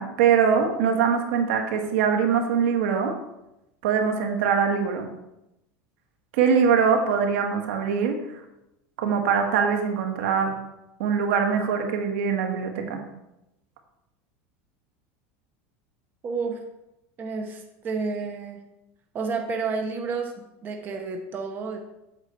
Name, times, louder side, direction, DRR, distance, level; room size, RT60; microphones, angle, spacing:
voice 1, 0.0-3.1 3.8-5.1 6.3-8.4 9.0-10.5 11.0-13.0, right 6 dB, 80° right, 4 dB, 1.5 m, -23 dB
voice 2, 16.2-16.6 17.2-18.6 19.1-21.8, right 4 dB, 30° right, 4 dB, 0.9 m, -30 dB
8.2 x 6.5 x 4.3 m, 0.89 s
supercardioid pair, 150°, 7 cm